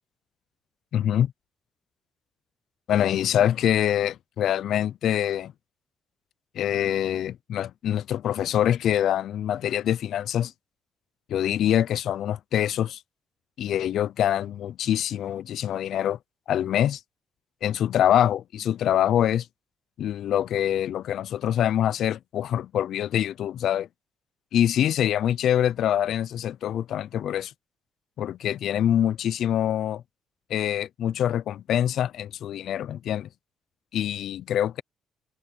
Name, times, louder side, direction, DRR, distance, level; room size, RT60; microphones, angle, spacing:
voice 1, 0.9-1.3 2.9-5.5 6.5-10.5 11.3-13.0 13.6-16.2 16.5-17.0 17.6-19.5 20.0-23.9 24.5-27.5 28.2-30.0 30.5-33.3 33.9-34.8, left 10 dB, 75° left, 0.6 m, -25 dB
cardioid pair, 90°, 0 cm